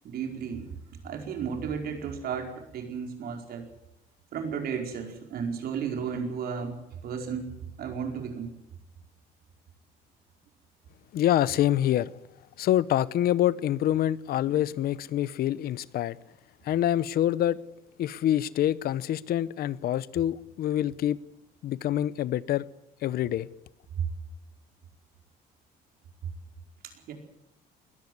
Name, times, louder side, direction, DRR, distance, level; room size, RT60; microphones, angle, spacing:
voice 1, 0.0-0.7 1.0-3.7 4.3-8.5 14.4-14.6 23.9-24.1 26.8-27.1, right 6 dB, 65° right, 5.0 m, -34 dB
voice 2, 11.1-12.1 12.6-16.2 16.6-17.6 18.0-21.2 21.6-22.7 23.0-23.5, left 12 dB, 65° left, 0.9 m, -26 dB
21.0 x 14.5 x 9.6 m
cardioid pair, 110°, 17 cm